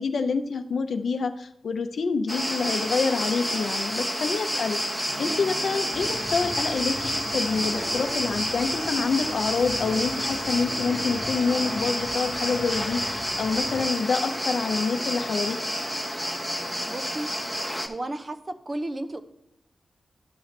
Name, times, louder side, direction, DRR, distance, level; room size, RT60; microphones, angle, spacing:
voice 1, 0.0-15.6, left 4 dB, 75° left, 8 dB, 0.6 m, -27 dB
sound 1, 2.3-17.9, equal, 10° right, 1.0 m, -29 dB
Guitar, 5.1-6.3 7.5-8.5 8.8-9.9 10.5-14.0, right 2 dB, 85° right, 2.8 m, -44 dB
sound 2, 5.9-13.9, left 2 dB, 50° left, 1.4 m, -41 dB
voice 2, 16.8-17.3 17.8-19.2, right 1 dB, 40° right, 9 dB, 0.8 m, -33 dB
12.5 x 5.7 x 3.2 m, 0.81 s
cardioid pair, 45°, 0 cm